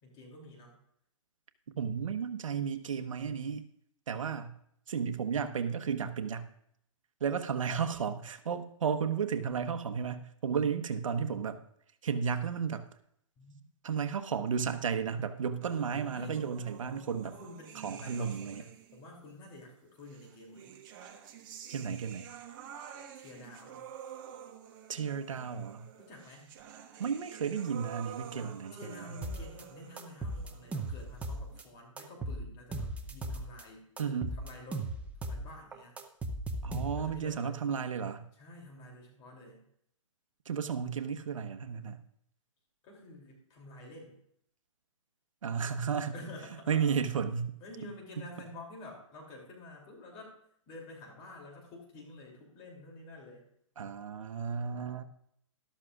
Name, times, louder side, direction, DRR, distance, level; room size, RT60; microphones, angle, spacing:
voice 1, 0.0-0.8 13.4-13.6 16.1-16.4 17.2-20.8 23.1-23.8 26.0-26.5 28.4-34.9 35.2-36.0 36.9-37.6 38.4-39.6 42.8-44.2 46.1-46.9 47.6-50.4 50.7-53.4, left 2 dB, 30° left, -1 dB, 2.9 m, -49 dB
voice 2, 1.8-3.6 4.1-4.6 4.9-6.5 7.2-11.6 12.0-12.8 13.8-17.4 17.8-18.6 21.7-22.3 24.9-25.9 27.0-29.1 34.0-34.3 36.6-38.3 40.4-42.0 45.4-46.1 46.7-47.5 53.8-55.0, right 6 dB, 75° right, 8 dB, 1.1 m, -33 dB
sound 1, 15.6-19.1 20.1-31.6, right 9 dB, 40° right, 1.3 m, -49 dB
sound 2, 29.2-29.6 30.0-31.6 32.0-33.6 34.0-35.5 35.7-37.2, right 1 dB, 10° right, 0.7 m, -37 dB
13.0 x 12.5 x 2.5 m, 0.71 s
hypercardioid pair, 145°, 17 cm